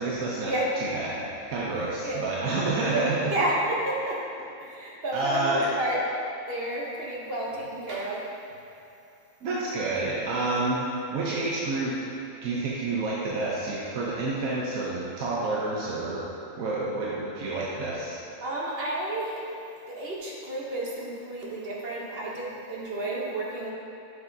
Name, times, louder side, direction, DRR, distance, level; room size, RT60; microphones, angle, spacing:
voice 1, 0.0-0.5 0.8-3.3 5.1-5.7 9.4-12.0 12.4-16.2 16.6-18.2, right 2 dB, 75° right, -5 dB, 1.2 m, -29 dB
voice 2, 1.8-2.3 2.9-3.0 3.3-4.2 4.6-6.0 6.5-8.2 18.4-19.4 19.9-23.7, right 1 dB, 50° right, -4 dB, 1.0 m, -31 dB
7.3 x 6.4 x 2.6 m, 2.7 s
omnidirectional pair, 1.5 m